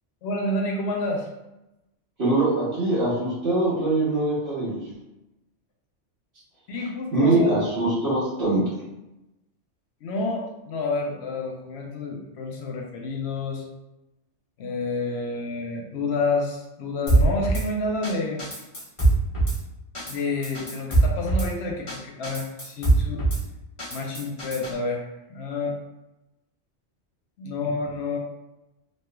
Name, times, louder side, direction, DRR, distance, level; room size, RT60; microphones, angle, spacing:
voice 1, 0.2-1.3 6.7-7.6 10.0-13.7 14.6-18.6 20.0-23.2 23.9-25.8 27.4-28.2, left 3 dB, 70° left, 1 dB, 0.8 m, -29 dB
voice 2, 2.2-4.8 7.1-8.6, right 2 dB, 60° right, -12 dB, 1.3 m, -22 dB
Drum kit / Snare drum, 17.1-17.6 18.0-18.1 18.4-19.6 19.9-20.2 20.4-21.5 21.9-22.0 22.2-23.4 23.8-24.7, right 2 dB, 25° left, 1.2 m, -22 dB
3.2 x 3.0 x 2.2 m, 0.94 s
omnidirectional pair, 1.2 m